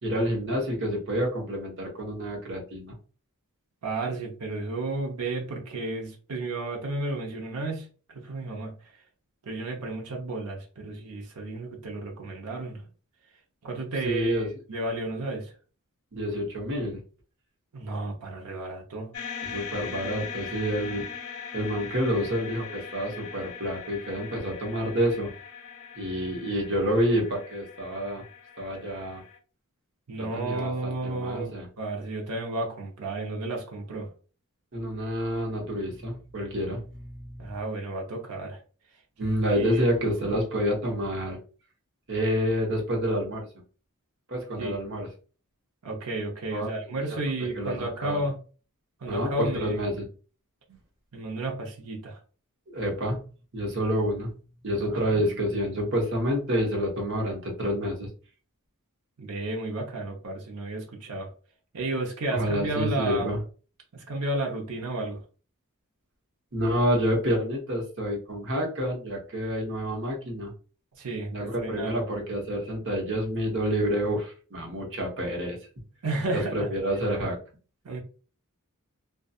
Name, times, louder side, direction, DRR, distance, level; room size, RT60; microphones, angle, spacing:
voice 1, 0.0-2.9 14.0-14.5 16.1-17.0 19.4-21.1 21.5-25.3 26.0-28.2 28.6-29.2 30.2-31.7 34.7-37.5 39.2-41.4 42.1-43.5 44.3-45.1 46.5-46.7 47.1-47.2 47.5-48.3 49.1-50.0 52.7-53.2 53.5-54.3 54.6-58.1 62.3-63.4 66.5-70.5 71.3-75.6 76.3-77.4, equal, 55° right, 1.0 m, -28 dB
voice 2, 3.8-8.7 9.4-12.8 13.6-14.4 14.7-15.5 17.7-19.1 30.1-34.1 37.4-38.6 39.5-39.8 44.6-44.7 45.8-48.4 49.0-49.8 50.7-50.8 51.1-52.2 54.9-55.3 59.2-61.3 61.7-63.3 63.9-65.2 71.0-72.0 76.0-76.7 77.8-78.0, right 2 dB, 85° right, 0.7 m, -32 dB
sound 1, 19.1-29.4, left 7 dB, 75° left, 0.5 m, -41 dB
2.6 x 2.3 x 2.3 m
head